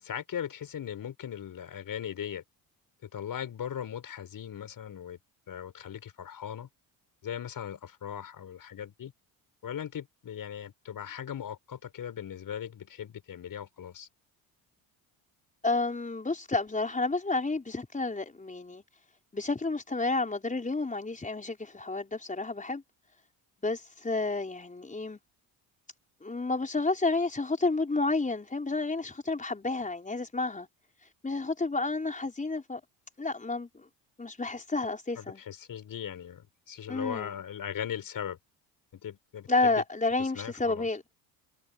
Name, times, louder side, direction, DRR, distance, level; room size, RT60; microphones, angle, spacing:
voice 1, 0.0-2.4 3.0-5.2 5.5-6.7 7.2-9.1 9.6-14.1 35.2-38.4 39.0-39.8 40.2-40.9, left 9 dB, 50° left, 6.5 m, -39 dB
voice 2, 15.6-18.8 19.3-22.8 23.6-25.2 26.2-30.7 31.2-32.8 33.2-33.9 34.2-35.4 36.9-37.4 39.5-41.0, left 3 dB, 20° left, 4.7 m, -30 dB
supercardioid pair, 75°, 42 cm